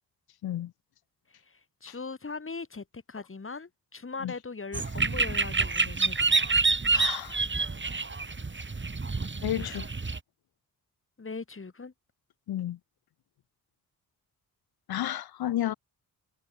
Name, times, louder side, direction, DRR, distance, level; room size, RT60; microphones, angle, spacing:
voice 1, 1.5-6.3 9.6-9.8 11.2-11.9, left 4 dB, 35° left, 7.8 m, -40 dB
sound 1, 4.7-10.2, right 3 dB, 30° right, 5.7 m, -27 dB
voice 2, 6.9-7.4 9.4-9.9 12.5-12.8 14.9-15.7, left 12 dB, 85° left, 1.9 m, -31 dB
cardioid pair, 70°, 36 cm